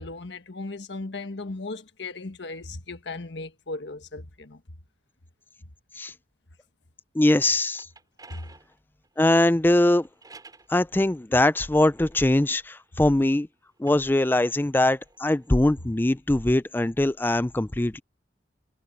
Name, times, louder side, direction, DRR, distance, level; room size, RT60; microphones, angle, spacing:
voice 1, 0.0-4.6 8.3-8.5, left 3 dB, 75° left, 1.4 m, -36 dB
voice 2, 7.1-7.9 9.2-10.1 10.7-13.5 13.8-18.0, left 1 dB, 10° left, 0.4 m, -22 dB
sound 1, 7.7-10.7 11.5-13.2 13.7-16.0, right 3 dB, 20° right, 6.3 m, -54 dB
head